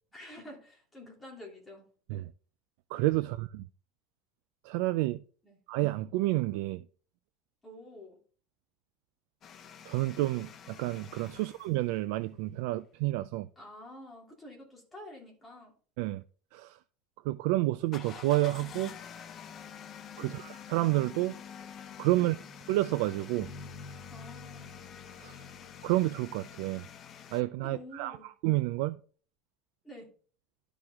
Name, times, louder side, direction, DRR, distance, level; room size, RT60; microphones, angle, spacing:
voice 1, 0.1-1.9 3.2-3.3 5.4-5.6 7.6-8.2 11.4-11.5 13.6-15.7 20.2-20.4 22.2-22.5 24.1-24.7 27.6-28.3 29.8-30.1, left 1 dB, 10° left, 2.8 m, -49 dB
voice 2, 2.9-3.6 4.6-5.2 5.7-6.8 9.9-13.5 16.0-16.2 16.5-16.8 17.2-18.9 20.2-21.4 22.0-22.3 22.7-23.5 25.2-25.4 25.8-26.8 27.3-28.2 28.4-29.0, right 18 dB, 65° right, 0.3 m, -29 dB
sound 1, 9.4-11.7 17.8-27.4, left 8 dB, 25° left, 0.6 m, -48 dB
Bass guitar, 23.4-27.4, left 4 dB, 85° left, 2.5 m, -50 dB
12.5 x 4.9 x 3.5 m
cardioid pair, 170°, 0 cm